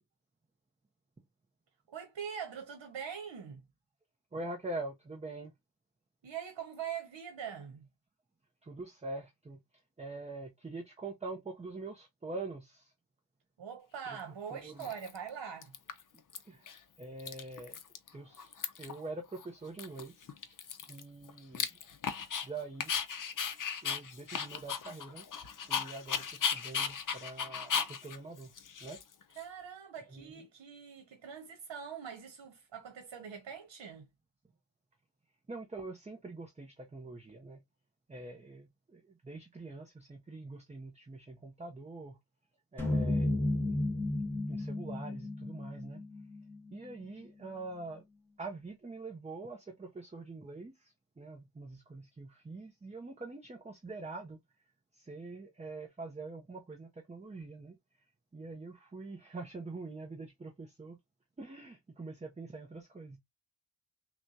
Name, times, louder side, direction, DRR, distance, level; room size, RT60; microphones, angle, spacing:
voice 1, 1.9-3.6 6.2-7.9 13.6-15.7 29.4-34.1, right 7 dB, 75° right, 1.1 m, -43 dB
voice 2, 4.3-5.5 8.6-12.9 14.1-14.2 14.5-14.9 16.4-17.8 18.1-20.3 20.9-21.8 22.4-22.9 23.8-25.3 25.7-28.5 28.8-29.0 30.1-30.4 35.5-37.6 38.1-42.2 42.7-43.3 44.5-46.0 46.7-48.0 48.4-54.4 54.9-61.0 61.4-63.2, right 3 dB, 15° right, 0.5 m, -44 dB
Dog, 14.1-14.2 14.8-15.3 15.6-16.4 16.7-16.8 17.0-18.1 18.3-19.0 19.4-19.5 19.8-22.5 22.8-29.4, left 7 dB, 45° left, 0.6 m, -36 dB
sound 1, 42.8-47.1, left 2 dB, 5° left, 1.3 m, -33 dB
6.0 x 2.3 x 2.6 m
wide cardioid pair, 175°, 44 cm